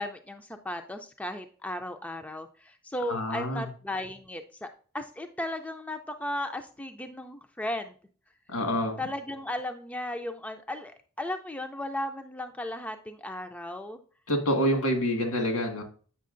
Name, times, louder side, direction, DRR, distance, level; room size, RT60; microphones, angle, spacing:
voice 1, 0.0-4.7 4.9-7.9 9.0-14.0, left 1 dB, 5° left, 6 dB, 0.3 m, -35 dB
voice 2, 3.0-3.7 8.5-9.0 14.3-15.8, equal, 75° left, 4 dB, 1.6 m, -27 dB
8.4 x 6.0 x 2.5 m, 0.41 s
head